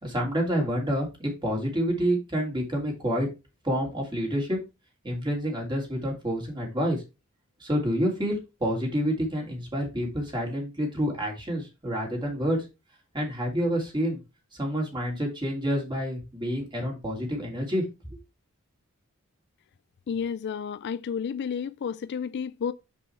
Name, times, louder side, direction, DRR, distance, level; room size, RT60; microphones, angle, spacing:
voice 1, 0.0-3.3 3.6-4.6 5.0-7.0 7.6-12.6 13.1-14.2 14.5-17.8 18.1-18.2, equal, 20° right, 2.8 m, -28 dB
voice 2, 20.1-22.7, left 7 dB, 50° left, 0.3 m, -31 dB
6.0 x 5.4 x 4.4 m
head